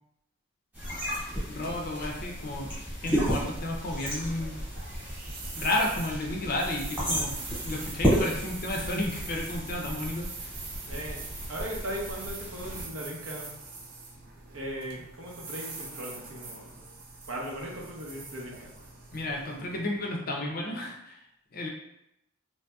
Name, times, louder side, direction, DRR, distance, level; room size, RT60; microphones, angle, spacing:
sound 1, 0.7-12.9, equal, 10° right, 1.1 m, -33 dB
voice 1, 1.5-2.7 3.0-4.6 5.5-7.3 7.6-10.5 19.1-21.2 21.5-21.7, left 1 dB, 45° left, 1 dB, 0.4 m, -32 dB
sound 2, 3.8-20.0, right 4 dB, 45° right, 0.5 m, -43 dB
voice 2, 10.8-13.5 14.5-16.8 17.3-18.7, equal, 85° right, -2 dB, 0.7 m, -38 dB
3.1 x 2.7 x 2.2 m, 0.82 s
head